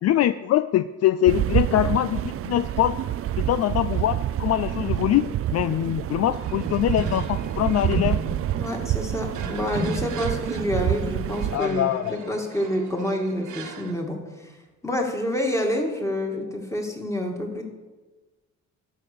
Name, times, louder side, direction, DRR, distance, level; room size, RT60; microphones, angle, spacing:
voice 1, 0.0-3.0 3.4-8.2 11.5-12.3, left 12 dB, 55° left, 13 dB, 0.4 m, -23 dB
sound 1, 1.3-11.6, right 12 dB, 50° right, 0.4 m, -27 dB
sound 2, 6.3-13.9, right 1 dB, 75° right, 1.4 m, -36 dB
voice 2, 8.6-14.5 14.8-17.6, left 1 dB, 10° left, 1 dB, 2.3 m, -28 dB
12.0 x 5.8 x 6.8 m, 1.2 s
cardioid pair, 90°, 30 cm